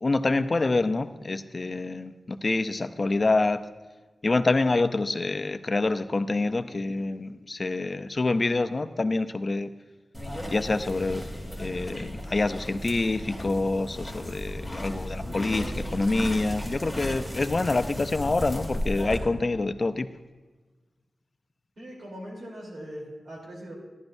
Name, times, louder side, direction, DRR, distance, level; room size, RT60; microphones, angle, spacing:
voice 1, 0.0-3.6 4.2-9.7 10.5-11.2 11.6-20.1, left 3 dB, 40° left, 10 dB, 0.5 m, -26 dB
sound 1, 10.1-19.2, equal, 10° right, 2.6 m, -35 dB
voice 2, 21.8-23.8, equal, 70° right, -2 dB, 3.3 m, -40 dB
14.5 x 11.5 x 2.6 m, 1.3 s
wide cardioid pair, 90°, 0 cm